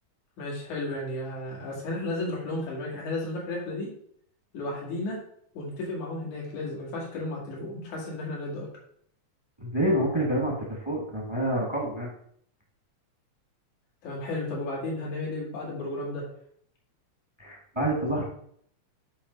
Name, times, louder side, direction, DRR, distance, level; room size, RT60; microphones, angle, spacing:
voice 1, 0.4-3.9 4.5-5.2 5.5-8.7 14.0-16.3, left 2 dB, 85° left, -4 dB, 3.5 m, -33 dB
voice 2, 9.6-12.1 17.4-18.2, right 1 dB, 20° right, -2 dB, 0.6 m, -27 dB
8.4 x 3.2 x 5.2 m, 0.64 s
omnidirectional pair, 3.3 m